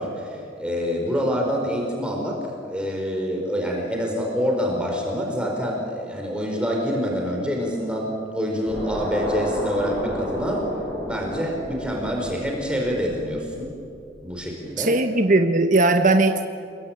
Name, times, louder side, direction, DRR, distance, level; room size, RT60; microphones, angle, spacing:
voice 1, 0.0-10.7 11.0-13.7 14.2-14.9, equal, 5° right, 0 dB, 4.3 m, -26 dB
sound 1, 8.7-13.9, equal, 10° left, 5.3 m, -31 dB
voice 2, 14.8-16.4, right 2 dB, 45° right, 5 dB, 1.2 m, -18 dB
29.0 x 22.0 x 8.8 m, 2.5 s
head